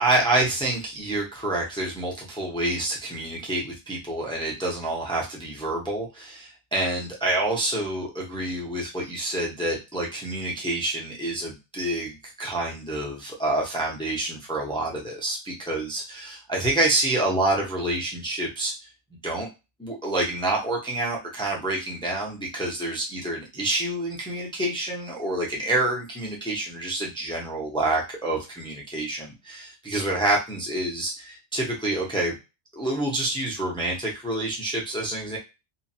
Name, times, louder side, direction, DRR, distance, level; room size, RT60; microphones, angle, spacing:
voice 1, 0.0-18.7 19.2-19.5 19.8-32.3 32.7-35.4, right 2 dB, 5° left, -2 dB, 0.6 m, -27 dB
2.7 x 2.4 x 2.7 m, 0.26 s
omnidirectional pair, 1.1 m